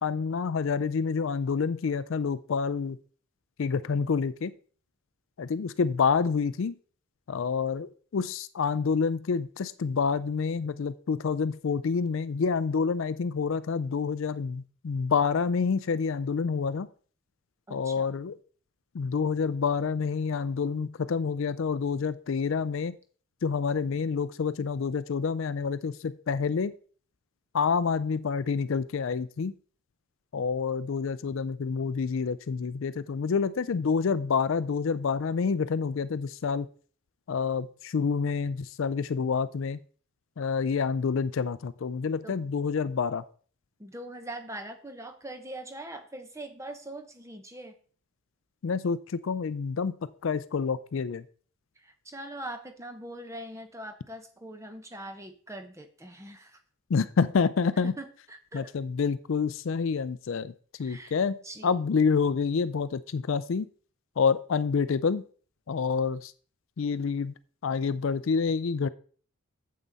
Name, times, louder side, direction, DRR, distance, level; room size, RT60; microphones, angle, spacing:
voice 1, 0.0-3.0 3.6-4.5 5.4-6.7 7.3-16.9 17.7-18.3 18.9-22.9 23.4-26.7 27.5-29.5 30.3-36.7 37.3-39.8 40.4-43.2 48.6-49.0 49.2-49.9 50.2-51.2 56.9-57.9 58.5-60.5 60.8-61.3 61.6-63.7 64.2-65.2 65.7-66.2 66.8-67.3 67.6-68.9, left 5 dB, 60° left, 15 dB, 0.4 m, -28 dB
voice 2, 17.7-18.1 42.2-42.5 43.8-47.7 51.8-56.6 57.7-58.7 60.8-61.1 61.4-61.8, right 1 dB, 15° right, 7 dB, 0.9 m, -42 dB
9.0 x 7.5 x 4.0 m, 0.44 s
head